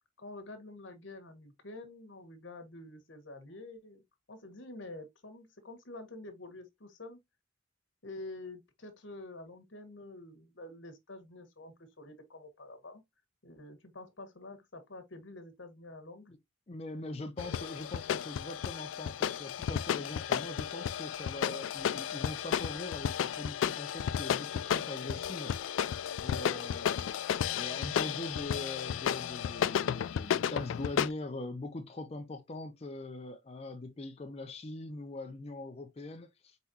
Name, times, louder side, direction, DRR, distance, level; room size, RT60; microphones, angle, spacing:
voice 1, 0.2-4.0 4.3-7.2 8.0-13.0 13.4-16.3, left 2 dB, 75° left, 1.3 m, -48 dB
voice 2, 16.7-25.5 26.2-36.6, left 2 dB, 35° left, 0.5 m, -42 dB
sound 1, 17.4-31.1, left 9 dB, 90° left, 0.3 m, -33 dB
4.6 x 4.1 x 2.7 m
head